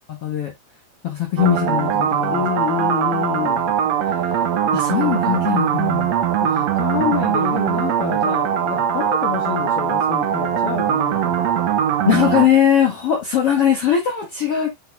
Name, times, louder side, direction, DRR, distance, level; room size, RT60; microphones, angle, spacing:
voice 1, 0.1-0.5 1.0-2.5 4.7-6.1 12.0-14.8, left 10 dB, 55° left, 1.7 m, -20 dB
sound 1, 1.4-12.5, right 9 dB, 90° right, 1.5 m, -21 dB
voice 2, 2.3-3.8 4.3-4.4 6.4-11.4, left 10 dB, 85° left, 2.8 m, -27 dB
8.0 x 4.7 x 2.6 m
omnidirectional pair, 4.4 m